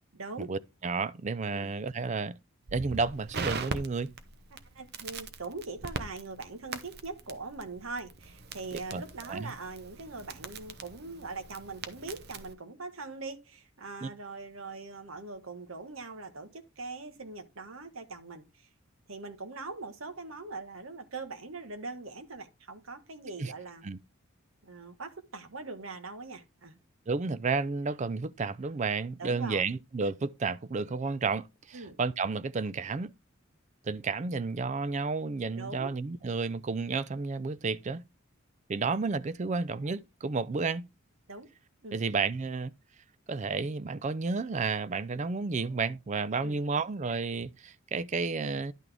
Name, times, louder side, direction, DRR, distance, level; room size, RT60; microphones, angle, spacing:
voice 1, 0.4-2.4 2.7-4.1 8.7-9.0 9.3-9.5 14.0-14.1 23.4-23.5 23.8-24.0 27.1-33.1 33.8-38.0 38.7-40.9 41.9-42.7 43.3-48.7, right 4 dB, 35° right, 0.4 m, -31 dB
Crackle, 2.7-12.5, right 4 dB, 50° right, 0.9 m, -41 dB
voice 2, 4.5-18.7 19.1-23.8 24.6-26.8 29.2-29.7 31.7-32.0 35.5-35.9 41.3-41.5 41.8-42.1 46.4-46.6, right 3 dB, 75° right, 1.3 m, -42 dB
11.0 x 6.0 x 3.4 m
head